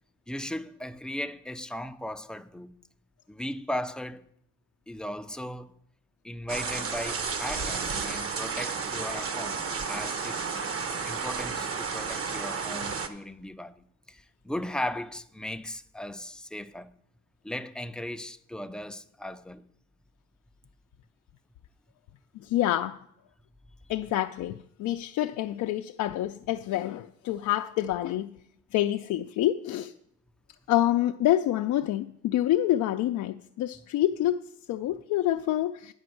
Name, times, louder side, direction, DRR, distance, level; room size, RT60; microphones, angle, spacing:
voice 1, 0.3-2.7 3.3-4.2 4.9-5.7 6.2-10.5 11.0-16.9 17.4-19.6, left 1 dB, 5° left, 0.4 m, -37 dB
sound 1, 6.5-13.1, right 5 dB, 50° right, 1.0 m, -32 dB
voice 2, 22.3-23.0 23.9-28.3 28.7-29.9 30.7-35.9, left 13 dB, 75° left, 0.5 m, -27 dB
9.5 x 5.1 x 7.7 m
cardioid pair, 90°, 30 cm